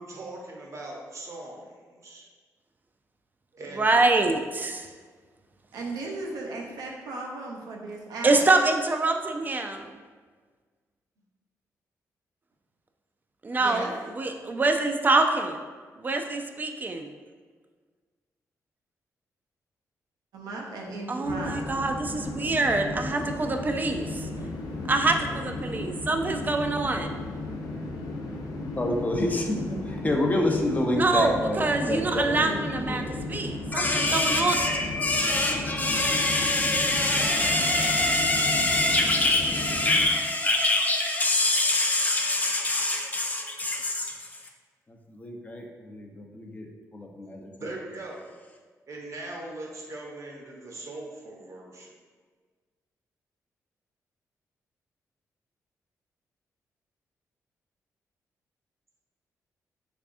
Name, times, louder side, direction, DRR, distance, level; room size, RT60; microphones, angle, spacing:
voice 1, 0.0-2.3 3.5-4.2 47.6-48.3 48.9-51.9, right 2 dB, 55° right, -1 dB, 0.8 m, -40 dB
voice 2, 3.8-4.9 8.2-9.9 13.4-15.6 16.0-17.1 21.1-24.3 24.9-27.2 30.9-34.5, right 3 dB, 30° right, 5 dB, 0.4 m, -25 dB
voice 3, 5.7-8.4 13.6-13.9 20.3-21.6, right 2 dB, 90° right, 0 dB, 0.6 m, -36 dB
sound 1, 21.2-40.1, left 2 dB, 85° left, 0.5 m, -35 dB
voice 4, 28.8-33.2 33.7-44.3 45.1-46.7 46.9-47.5, left 2 dB, 25° left, 1 dB, 0.5 m, -26 dB
3.4 x 3.3 x 2.5 m, 1.5 s
cardioid pair, 75°, 6 cm